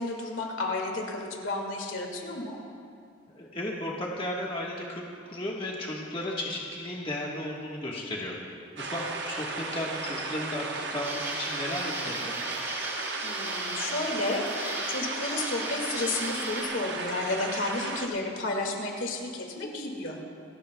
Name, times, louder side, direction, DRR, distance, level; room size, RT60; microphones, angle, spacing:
voice 1, 0.0-2.6 13.2-20.2, left 2 dB, 80° left, 1 dB, 2.0 m, -32 dB
voice 2, 3.3-8.3 8.7-12.4, left 1 dB, 25° left, -3 dB, 1.4 m, -34 dB
sound 1, 8.8-18.1, right 3 dB, 60° right, 1.0 m, -35 dB
Insect, 11.0-16.6, right 1 dB, 15° right, 2.0 m, -38 dB
27.5 x 13.5 x 2.3 m, 2.4 s
head